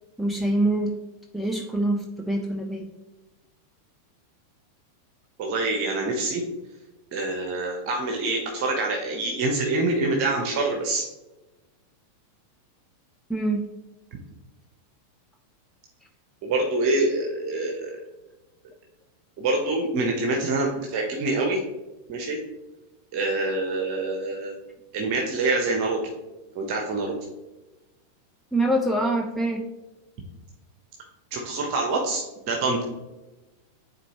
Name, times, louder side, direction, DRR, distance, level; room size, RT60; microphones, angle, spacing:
voice 1, 0.2-0.9 1.3-2.9 13.3-13.6 28.5-29.6, right 1 dB, 5° left, 2 dB, 0.6 m, -25 dB
voice 2, 5.4-6.4 7.1-11.0 16.4-18.0 19.4-21.6 22.1-22.4 23.1-24.5 24.9-26.1 26.5-27.1 31.3-32.8, right 2 dB, 45° right, 1 dB, 1.0 m, -26 dB
9.9 x 4.0 x 3.0 m, 1.1 s
figure-of-eight pair, 90°, 0 cm